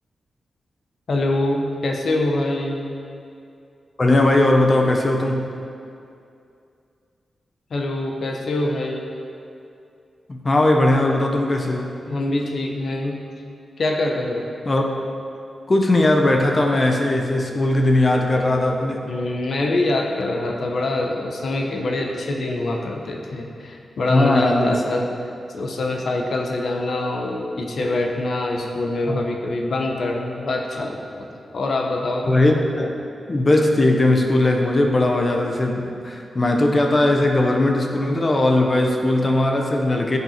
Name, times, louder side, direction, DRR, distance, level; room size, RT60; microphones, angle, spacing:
voice 1, 1.1-2.8 7.7-9.0 12.1-13.2 13.8-14.4 19.0-25.1 25.5-31.3 31.5-32.3, left 2 dB, 55° left, 1 dB, 1.1 m, -24 dB
voice 2, 4.0-5.5 10.3-12.0 14.6-14.8 15.7-19.0 24.1-24.8 29.1-29.2 32.2-32.9 33.3-40.2, left 1 dB, 25° left, 2 dB, 0.8 m, -19 dB
15.0 x 6.8 x 4.4 m, 2.6 s
wide cardioid pair, 180°, 0 cm